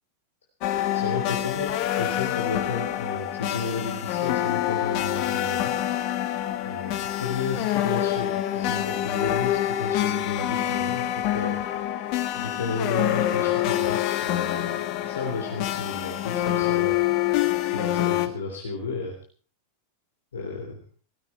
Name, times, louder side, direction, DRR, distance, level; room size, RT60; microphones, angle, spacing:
sound 1, 0.6-18.3, left 13 dB, 45° left, 1.5 m, -26 dB
voice 1, 0.9-5.8 6.6-11.6 12.3-17.0 17.6-19.2 20.3-20.7, left 4 dB, 70° left, 1 dB, 3.4 m, -33 dB
17.5 x 15.5 x 4.5 m, 0.40 s
figure-of-eight pair, 90°, 0 cm